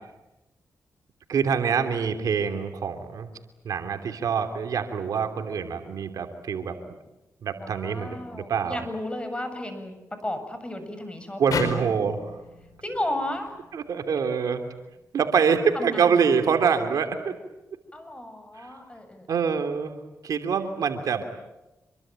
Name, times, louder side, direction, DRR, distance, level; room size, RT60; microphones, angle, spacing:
voice 1, 1.3-3.3 3.6-6.7 7.4-8.8 11.4-12.3 13.7-14.6 15.1-17.4 18.6-18.7 19.3-21.2, right 6 dB, 75° right, 7 dB, 3.0 m, -25 dB
voice 2, 7.6-11.4 12.8-13.5 15.7-16.1 17.9-19.3, left 1 dB, 20° left, 8 dB, 7.4 m, -33 dB
sound 1, 11.5-14.7, left 4 dB, 75° left, 4.4 m, -35 dB
27.0 x 23.0 x 9.0 m, 1.0 s
cardioid pair, 65°, 6 cm